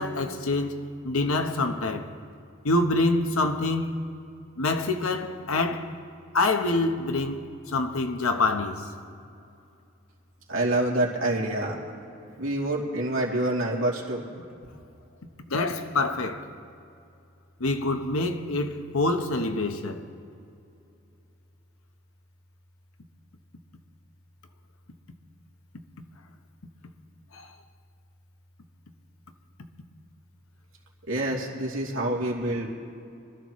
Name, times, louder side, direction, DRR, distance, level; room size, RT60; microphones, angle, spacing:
voice 1, 0.0-2.1 2.6-3.9 4.6-5.9 6.3-8.9 15.5-16.4 17.6-20.0 27.3-27.5, left 2 dB, 90° left, 1.1 m, -26 dB
voice 2, 10.5-14.2 31.1-32.7, right 1 dB, 80° right, 2.8 m, -27 dB
25.5 x 14.0 x 3.1 m
head